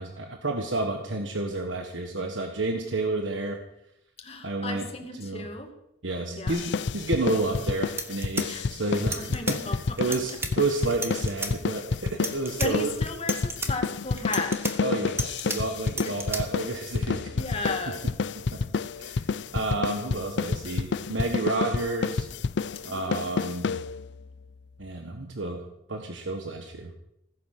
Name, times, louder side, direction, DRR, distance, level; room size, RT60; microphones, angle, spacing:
voice 1, 0.0-3.6 4.4-4.8 5.2-5.5 6.0-9.6 10.0-12.9 14.8-17.4 18.5-18.6 19.0-19.2 19.5-22.3 22.8-23.7 24.8-26.9, right 2 dB, 90° right, 4 dB, 1.5 m, -30 dB
voice 2, 4.2-5.7 6.4-6.6 8.5-8.7 9.2-10.4 12.6-14.8 15.9-16.1 17.3-18.0 22.9-23.4, left 2 dB, 35° left, 4 dB, 2.3 m, -35 dB
sound 1, 6.5-24.2, left 4 dB, 70° left, 0.5 m, -29 dB
sound 2, 7.5-7.6 7.9-9.6 10.0-10.5 10.9-11.5 12.1-12.7 13.1-13.7 14.2-15.6 15.9-16.4, right 2 dB, 15° right, 1.6 m, -32 dB
17.0 x 10.0 x 6.6 m, 0.82 s
head